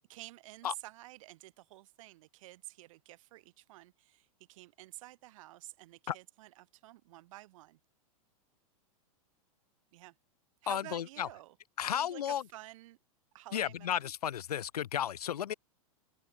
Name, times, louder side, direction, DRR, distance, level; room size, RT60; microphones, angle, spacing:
voice 1, 0.1-7.8 9.9-10.1 10.6-11.6 11.9-13.0 13.3-14.1, right 18 dB, 60° right, 4.9 m, -51 dB
voice 2, 10.7-11.3 11.8-12.4 13.5-15.5, left 10 dB, 85° left, 3.3 m, -33 dB
open air
hypercardioid pair, 135°, 19 cm